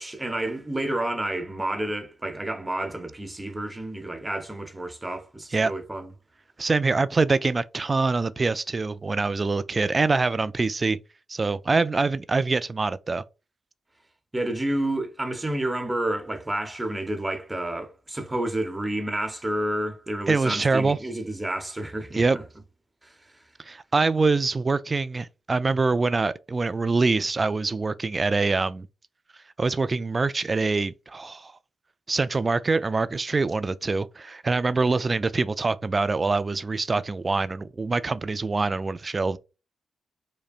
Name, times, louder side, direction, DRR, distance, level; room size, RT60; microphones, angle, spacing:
voice 1, 0.0-6.1 14.3-22.4 23.0-23.4, right 1 dB, 20° right, 0.9 m, -30 dB
voice 2, 6.6-11.0 11.3-13.2 20.3-21.0 22.2-22.4 23.7-28.9 29.6-31.5 32.1-39.4, right 3 dB, 40° right, 0.3 m, -24 dB
5.0 x 2.1 x 2.4 m
supercardioid pair, 50°, 0 cm